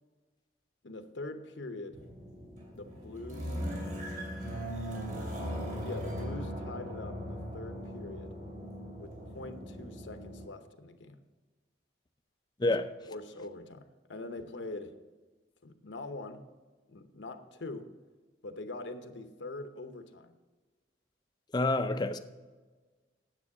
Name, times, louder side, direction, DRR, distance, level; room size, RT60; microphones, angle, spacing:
voice 1, 0.8-2.0 2.8-3.6 5.1-5.5 5.8-8.4 9.0-11.2 13.1-15.0 15.6-16.4 16.9-18.0 18.4-20.4, left 2 dB, 70° left, 0.8 m, -43 dB
sound 1, 1.9-10.5, equal, 45° right, 2.7 m, -39 dB
voice 2, 12.6-12.9 21.5-22.2, left 2 dB, 20° left, 0.4 m, -28 dB
9.8 x 7.6 x 4.8 m
head